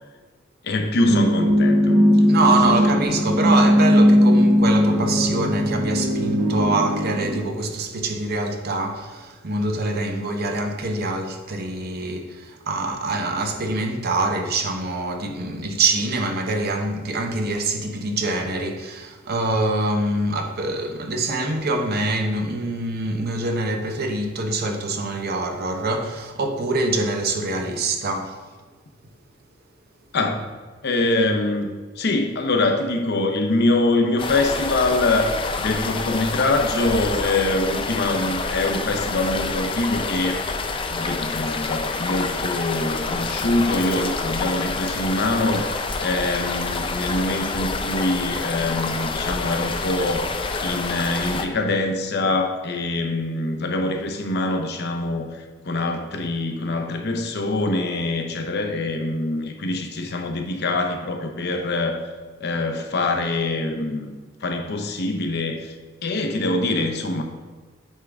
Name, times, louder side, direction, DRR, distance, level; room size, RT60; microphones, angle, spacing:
voice 1, 0.6-2.0 2.5-3.0 30.1-30.5 30.8-31.7 32.0-40.4 40.9-62.0 62.4-65.7 66.0-67.2, left 2 dB, 55° left, 0.7 m, -24 dB
sound 1, 1.0-7.4, equal, 75° right, 1.1 m, -18 dB
voice 2, 2.3-28.4, right 2 dB, 50° right, 0.7 m, -25 dB
sound 2, 34.2-51.5, left 4 dB, 25° left, 0.4 m, -27 dB
8.3 x 3.7 x 3.4 m
head